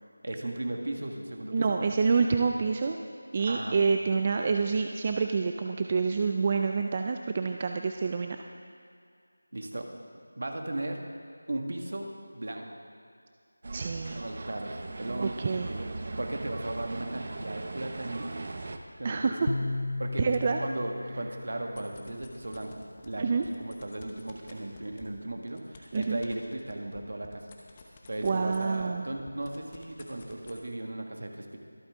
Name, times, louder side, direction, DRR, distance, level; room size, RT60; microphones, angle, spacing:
voice 1, 0.2-1.9 3.4-3.8 9.5-9.9 10.4-11.0 11.5-12.8 14.1-15.4 15.7-15.9 16.2-18.3 19.0-19.5 20.0-20.3 20.6-27.5 28.1-31.6, right 1 dB, 65° right, 3 dB, 1.8 m, -36 dB
voice 2, 1.5-3.0 3.3-8.4 13.7-14.2 15.2-15.7 19.0-19.5 20.2-20.6 23.2-23.5 25.9-26.2 28.2-29.1, right 4 dB, 25° right, 4 dB, 0.4 m, -27 dB
sound 1, 13.6-18.8, right 2 dB, 40° right, 0.7 m, -39 dB
sound 2, 19.5-22.7, left 2 dB, 55° left, 0.4 m, -35 dB
sound 3, 21.6-23.1 23.4-28.9 29.2-30.6, left 4 dB, 20° left, 1.0 m, -51 dB
24.0 x 8.7 x 3.7 m, 2.3 s
figure-of-eight pair, 175°, 0 cm